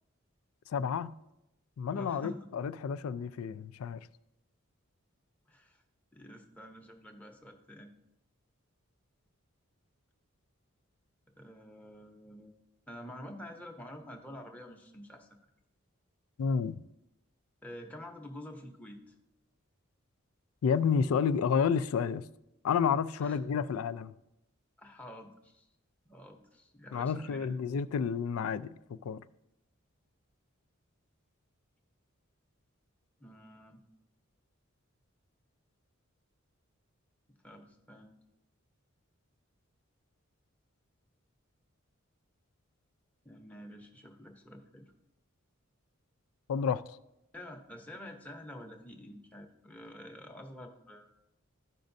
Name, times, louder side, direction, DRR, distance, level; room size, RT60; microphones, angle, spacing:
voice 1, 0.7-1.2 1.8-4.1 16.4-16.8 20.6-22.3 22.6-24.1 26.9-29.2 46.5-46.8, left 6 dB, 85° left, 15 dB, 0.3 m, -30 dB
voice 2, 1.9-2.5 5.5-5.8 6.1-7.9 11.4-12.5 12.9-15.4 17.6-19.1 23.2-23.4 24.8-25.7 26.0-27.5 33.2-33.8 37.4-38.2 43.2-44.9 47.3-51.1, left 1 dB, 5° left, 2 dB, 0.7 m, -48 dB
13.0 x 5.2 x 2.6 m, 0.87 s
head